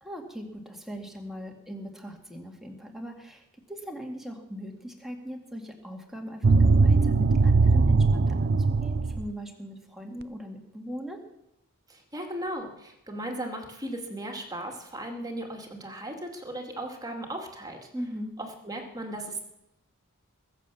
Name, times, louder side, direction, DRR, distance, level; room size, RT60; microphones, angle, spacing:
voice 1, 0.0-11.2 17.9-18.3, equal, ahead, 1 dB, 2.2 m, -40 dB
sound 1, 6.4-9.3, right 3 dB, 45° right, 0.5 m, -20 dB
voice 2, 11.9-17.9 18.4-19.4, right 1 dB, 15° right, 2 dB, 2.5 m, -36 dB
21.5 x 7.5 x 7.1 m, 0.85 s
head